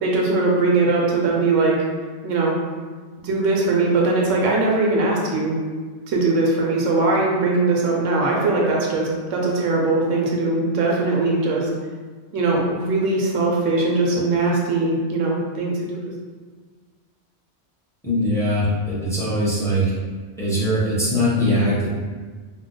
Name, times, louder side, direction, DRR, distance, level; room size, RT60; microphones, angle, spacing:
voice 1, 0.0-1.8 2.2-2.6 3.2-5.6 6.1-11.7 12.3-16.1, right 3 dB, 85° right, -2 dB, 1.0 m, -20 dB
voice 2, 18.0-19.8 20.4-21.9, equal, 5° left, -9 dB, 0.7 m, -21 dB
2.9 x 2.0 x 3.7 m, 1.5 s
omnidirectional pair, 1.3 m